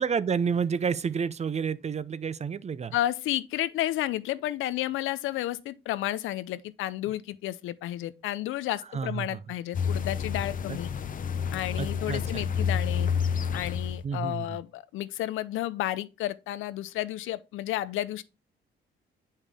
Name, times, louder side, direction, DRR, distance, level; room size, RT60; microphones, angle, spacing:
voice 1, 0.0-2.9 8.9-9.4 11.8-12.4 14.0-14.6, right 6 dB, 35° right, 0.6 m, -30 dB
voice 2, 2.9-10.9 11.5-13.1 13.5-18.2, left 14 dB, 85° left, 0.5 m, -32 dB
sound 1, 9.7-14.1, left 7 dB, 45° left, 0.7 m, -29 dB
8.2 x 5.5 x 3.4 m
cardioid pair, 90°, 20 cm